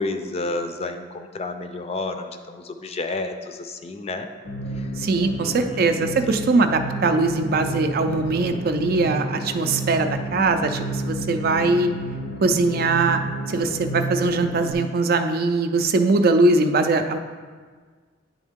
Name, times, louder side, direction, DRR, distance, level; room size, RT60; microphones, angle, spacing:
voice 1, 0.0-4.3 4.8-4.9 5.4-5.8 6.3-6.5, left 2 dB, 35° left, 7 dB, 0.4 m, -31 dB
sound 1, 4.4-14.7, right 1 dB, 80° left, 0.8 m, -31 dB
voice 2, 5.0-11.9 12.4-13.2 13.5-17.2, right 3 dB, 55° right, 8 dB, 0.4 m, -21 dB
9.7 x 3.6 x 3.6 m, 1.5 s
head